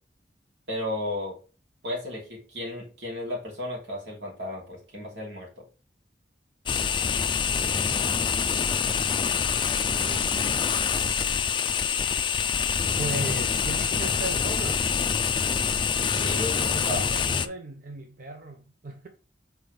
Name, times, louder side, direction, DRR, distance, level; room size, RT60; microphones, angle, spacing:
voice 1, 0.7-1.3 1.8-5.5 16.1-16.6 16.8-17.0, left 1 dB, 80° right, 3.2 m, -33 dB
sound 1, 6.7-17.5, left 6 dB, 25° left, 0.4 m, -26 dB
voice 2, 6.9-8.3 8.9-10.7 13.0-14.9 16.6-19.1, right 2 dB, 50° right, 0.8 m, -38 dB
6.8 x 4.6 x 3.3 m
head